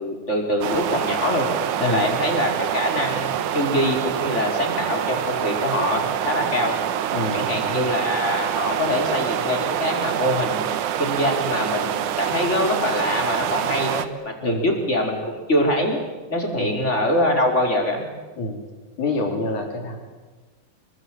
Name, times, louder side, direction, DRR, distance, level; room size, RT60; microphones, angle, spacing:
voice 1, 0.0-1.5 1.8-6.7 7.3-16.0 16.3-18.0, left 1 dB, 20° left, 2 dB, 5.1 m, -24 dB
sound 1, 0.6-14.1, right 10 dB, 85° right, 2.7 m, -26 dB
voice 2, 1.8-2.1 7.1-7.8 14.4-14.7 16.6-16.7 18.4-18.6 19.0-20.1, left 2 dB, 80° left, 3 dB, 5.4 m, -27 dB
28.5 x 22.0 x 9.0 m, 1.3 s
omnidirectional pair, 3.4 m